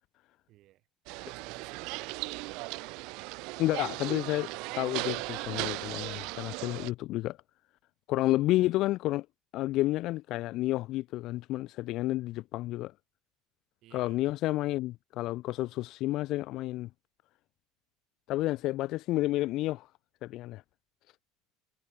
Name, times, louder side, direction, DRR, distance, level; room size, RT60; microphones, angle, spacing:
voice 1, 0.5-0.8 1.2-2.3 8.5-8.7 13.8-14.3 18.5-18.6, right 16 dB, 45° right, 6.6 m, -55 dB
sound 1, 1.1-6.9, right 26 dB, 60° right, 0.4 m, -37 dB
voice 2, 3.6-7.4 8.1-9.3 9.5-12.9 13.9-16.9 18.3-19.9 20.2-20.6, left 17 dB, 50° left, 0.8 m, -30 dB
cardioid pair, 160°, 0 cm